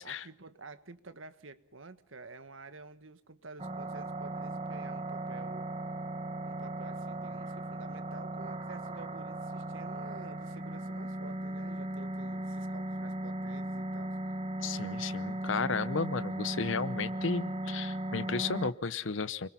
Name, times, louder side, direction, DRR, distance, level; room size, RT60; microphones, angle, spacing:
voice 1, 0.0-5.7 6.4-14.4, right 3 dB, 80° right, 12 dB, 1.5 m, -50 dB
sound 1, 3.6-18.7, right 1 dB, 30° right, 1.4 m, -37 dB
voice 2, 14.6-19.5, left 4 dB, 75° left, 17 dB, 0.9 m, -33 dB
29.5 x 22.0 x 5.8 m, 0.67 s
head